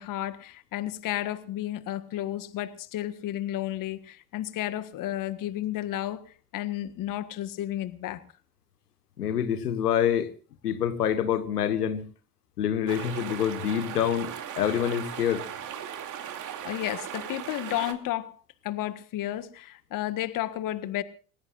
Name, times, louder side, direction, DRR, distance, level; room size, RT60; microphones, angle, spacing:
voice 1, 0.0-6.2 6.5-8.2 16.6-18.4 18.6-21.0, left 13 dB, 45° left, 1.6 m, -32 dB
voice 2, 9.2-10.3 10.6-12.0 12.6-15.5, left 9 dB, 85° left, 1.5 m, -26 dB
sound 1, 12.9-17.9, right 9 dB, 40° right, 2.8 m, -38 dB
29.0 x 16.5 x 2.5 m
hypercardioid pair, 80°, 46 cm